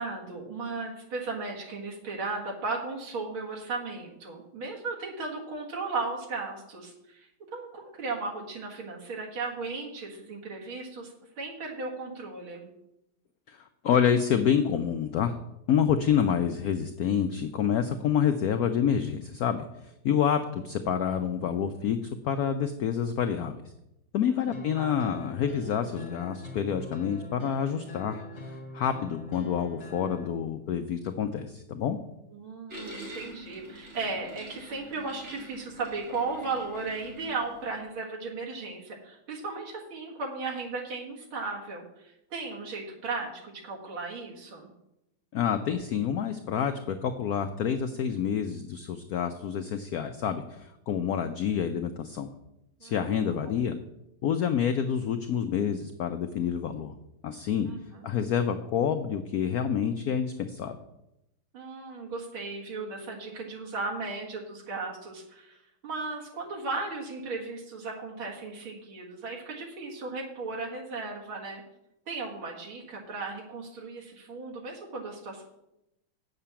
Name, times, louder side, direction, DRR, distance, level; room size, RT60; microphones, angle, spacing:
voice 1, 0.0-12.7 24.3-25.0 32.3-44.7 52.8-53.2 53.4-53.6 57.6-58.1 61.5-71.6 72.1-75.4, right 3 dB, 90° right, -2 dB, 2.7 m, -36 dB
voice 2, 13.8-15.4 15.7-19.7 20.0-23.6 24.1-32.0 45.3-52.3 52.8-53.8 54.2-56.9 57.2-57.7 58.0-60.8, left 8 dB, 70° left, 8 dB, 0.9 m, -28 dB
sound 1, 24.5-30.3, left 1 dB, 50° left, 1.7 m, -43 dB
sound 2, 32.7-37.7, right 1 dB, 35° right, 2.9 m, -45 dB
8.7 x 6.7 x 6.9 m, 0.86 s
omnidirectional pair, 2.2 m